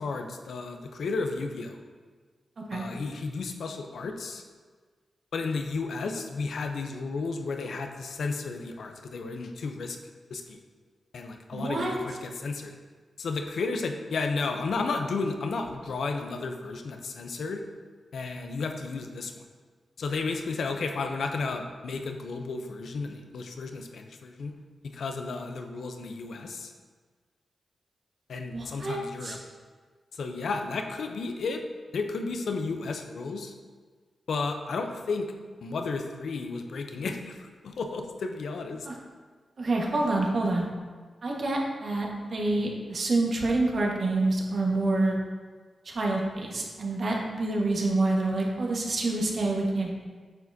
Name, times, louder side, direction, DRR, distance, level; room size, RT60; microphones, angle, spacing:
voice 1, 0.0-1.8 2.7-4.4 5.3-10.0 10.3-10.6 11.1-12.7 13.2-17.6 18.1-19.4 20.0-24.5 24.8-26.7 28.3-29.4 30.1-31.6 31.9-33.5 34.3-35.3 35.6-38.9, left 4 dB, 80° left, 5 dB, 0.6 m, -33 dB
voice 2, 11.5-11.9 28.5-29.4 38.9-39.0 39.6-40.7 41.2-45.2 45.8-49.9, right 2 dB, 60° right, -1 dB, 1.4 m, -27 dB
8.8 x 6.2 x 2.7 m, 1.5 s
cardioid pair, 55°, 0 cm